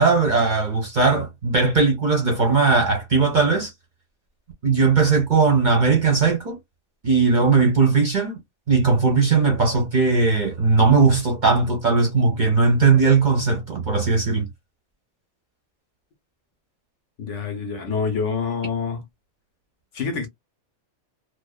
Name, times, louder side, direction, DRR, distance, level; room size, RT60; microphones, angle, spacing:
voice 1, 0.0-3.7 4.6-6.6 7.0-8.4 8.7-14.5, right 4 dB, 45° right, 0.7 m, -18 dB
voice 2, 17.2-19.0 19.9-20.3, left 5 dB, 60° left, 0.9 m, -26 dB
2.6 x 2.1 x 2.2 m
omnidirectional pair, 1.5 m